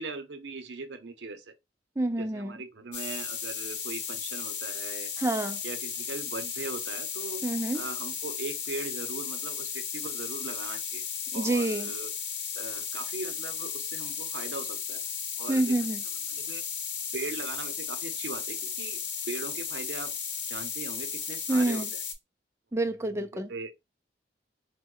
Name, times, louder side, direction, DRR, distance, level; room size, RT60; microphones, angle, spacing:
voice 1, 0.0-1.5 2.1-5.1 5.6-7.4 7.7-11.0 11.3-12.1 12.5-15.0 15.4-15.7 16.3-16.6 17.1-19.0 19.2-20.1 20.5-22.0 23.0-23.7, right 3 dB, 80° right, 0.7 m, -39 dB
voice 2, 2.0-2.6 5.2-5.6 7.4-7.8 11.3-11.9 15.5-16.0 21.5-21.9 22.7-23.5, right 2 dB, 15° right, 0.4 m, -28 dB
sound 1, 2.9-22.1, left 7 dB, 85° left, 0.7 m, -35 dB
3.1 x 2.1 x 3.7 m
head